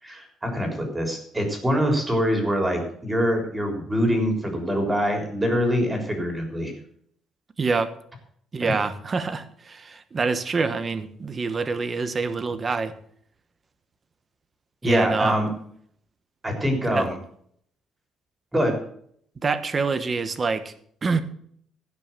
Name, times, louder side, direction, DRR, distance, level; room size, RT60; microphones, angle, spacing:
voice 1, 0.0-6.7 8.6-8.7 14.8-15.5 16.4-17.2 18.5-18.8, equal, 10° right, 2 dB, 3.7 m, -24 dB
voice 2, 7.6-7.9 8.5-12.9 14.8-15.4 16.9-17.1 19.4-20.7 21.0-21.2, right 4 dB, 30° right, 12 dB, 1.1 m, -26 dB
16.0 x 6.1 x 7.3 m, 0.64 s
cardioid pair, 140°, 0 cm